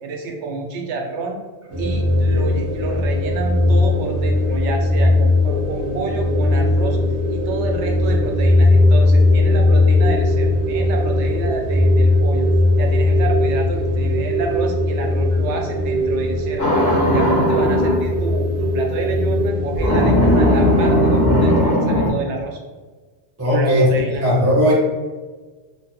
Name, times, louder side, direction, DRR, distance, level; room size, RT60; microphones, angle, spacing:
voice 1, 0.0-1.4 1.8-7.0 7.3-12.5 12.8-16.8 17.1-22.6 23.5-24.2, right 3 dB, 85° right, 2 dB, 0.9 m, -29 dB
sound 1, 1.7-21.7, left 1 dB, 55° right, 0.8 m, -18 dB
sound 2, 16.6-18.0 19.8-22.1, left 1 dB, 65° left, 1.1 m, -17 dB
voice 2, 23.4-24.7, equal, 25° right, -6 dB, 0.3 m, -17 dB
3.0 x 2.2 x 2.7 m, 1.3 s
omnidirectional pair, 1.2 m